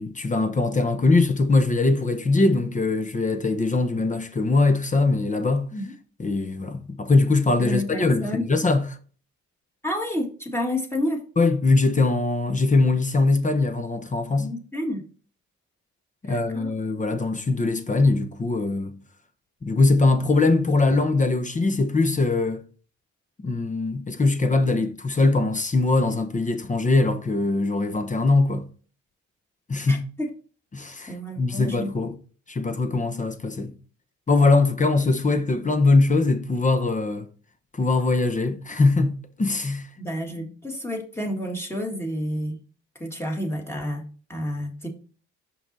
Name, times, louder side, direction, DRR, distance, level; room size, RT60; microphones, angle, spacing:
voice 1, 0.0-5.7 6.2-8.9 11.4-14.5 16.2-19.0 19.6-22.6 23.4-28.7 29.7-30.0 30.7-32.1 32.5-33.7 34.3-37.3 37.7-39.9, left 3 dB, 25° left, 0.9 m, -22 dB
voice 2, 7.6-8.5 9.8-11.2 14.4-15.0 16.2-16.7 29.9-30.3 31.1-31.9 40.0-42.6 43.0-44.0 44.3-44.9, left 1 dB, 10° left, 1.7 m, -30 dB
5.7 x 5.6 x 4.0 m
cardioid pair, 90°, 30 cm